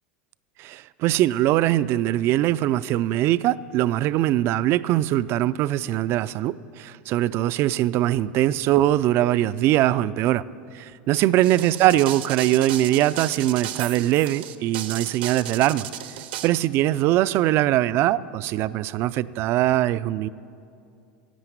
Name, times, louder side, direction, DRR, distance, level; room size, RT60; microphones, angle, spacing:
voice 1, 0.6-10.4 10.7-15.9 16.4-20.3, right 14 dB, 50° right, 17 dB, 0.3 m, -22 dB
sound 1, 11.4-16.5, right 12 dB, 75° right, 0.7 m, -34 dB
11.5 x 7.9 x 9.1 m, 2.5 s
hypercardioid pair, 95°, 5 cm